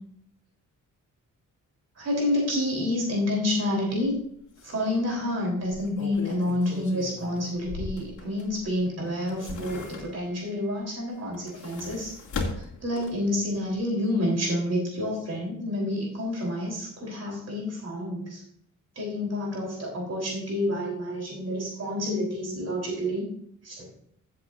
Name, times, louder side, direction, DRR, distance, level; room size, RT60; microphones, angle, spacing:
voice 1, 2.0-4.2 4.6-12.1 12.5-18.4 19.0-23.3 23.6-23.9, left 1 dB, 50° right, -2 dB, 3.8 m, -29 dB
sound 1, 4.0-4.2 4.6-4.7 5.6-8.7 9.1-10.4 11.2-13.4 13.7-13.8, left 4 dB, 65° left, 2.5 m, -37 dB
16.0 x 7.6 x 2.6 m, 0.69 s
wide cardioid pair, 120°, 32 cm